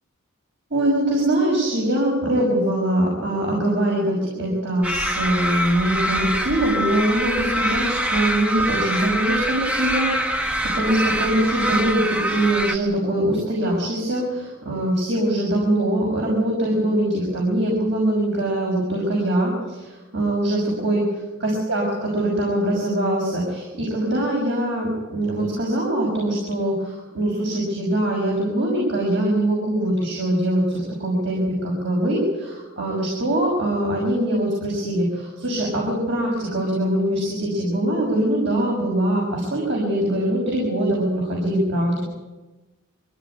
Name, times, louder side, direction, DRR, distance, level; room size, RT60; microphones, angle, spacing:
voice 1, 0.7-21.8 22.1-42.0, right 1 dB, 55° right, -2 dB, 6.3 m, -23 dB
sound 1, 4.8-12.8, equal, 5° right, 1.4 m, -24 dB
23.0 x 16.0 x 10.0 m, 1.2 s
head